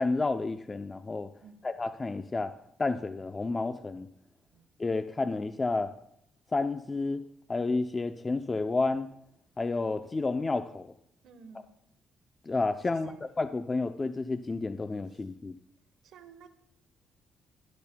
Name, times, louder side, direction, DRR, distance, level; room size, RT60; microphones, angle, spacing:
voice 1, 0.0-1.3 1.6-2.5 2.8-4.1 4.8-5.9 6.5-7.2 7.5-9.1 9.6-10.9 12.4-15.5, left 3 dB, 25° left, 0.4 m, -30 dB
voice 2, 11.2-11.7 12.9-13.2 15.1-15.2 16.0-16.5, right 6 dB, 75° right, 0.9 m, -51 dB
12.5 x 12.0 x 2.2 m
cardioid pair, 90°, 0 cm